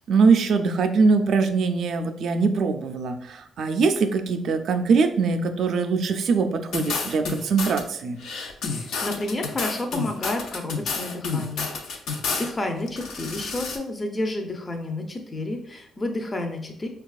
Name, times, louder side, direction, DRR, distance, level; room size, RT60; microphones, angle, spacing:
voice 1, 0.1-8.2, right 4 dB, 65° right, 7 dB, 0.4 m, -22 dB
sound 1, 6.7-7.8 8.2-12.5 12.9-13.8, left 4 dB, 75° left, 0.5 m, -30 dB
voice 2, 8.7-12.0 12.3-16.9, left 2 dB, 25° left, 4 dB, 0.5 m, -30 dB
4.6 x 2.3 x 2.3 m, 0.67 s
cardioid pair, 90°, 0 cm